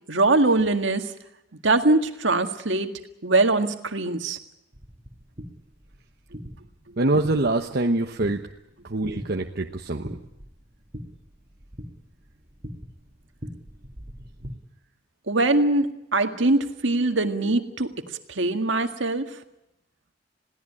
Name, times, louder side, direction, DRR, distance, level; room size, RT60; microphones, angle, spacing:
voice 1, 0.1-1.1 1.6-4.4 15.3-17.9 18.3-19.3, right 2 dB, 70° right, 6 dB, 1.9 m, -22 dB
sound 1, 4.7-14.5, equal, 35° right, 2.6 m, -43 dB
voice 2, 7.0-8.4 8.8-10.2, right 2 dB, 55° right, 3 dB, 1.1 m, -24 dB
21.5 x 16.5 x 10.0 m, 0.88 s
head